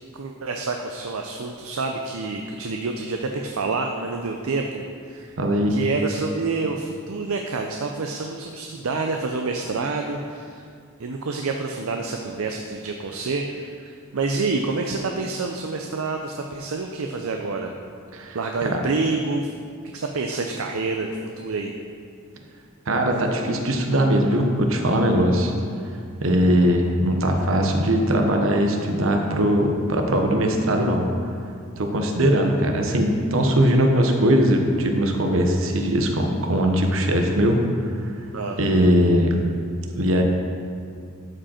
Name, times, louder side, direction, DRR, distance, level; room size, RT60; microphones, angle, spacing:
voice 1, 0.1-5.3 5.7-10.6 11.0-17.7 18.3-19.5 19.9-21.7 38.3-38.6, right 3 dB, 85° right, 3 dB, 0.6 m, -28 dB
voice 2, 5.4-5.8 18.1-18.4 18.7-18.8 22.9-25.5 26.2-31.0 31.8-37.9 38.6-39.4 39.9-40.2, equal, 70° right, 3 dB, 1.0 m, -20 dB
12.0 x 5.1 x 4.4 m, 2.3 s
head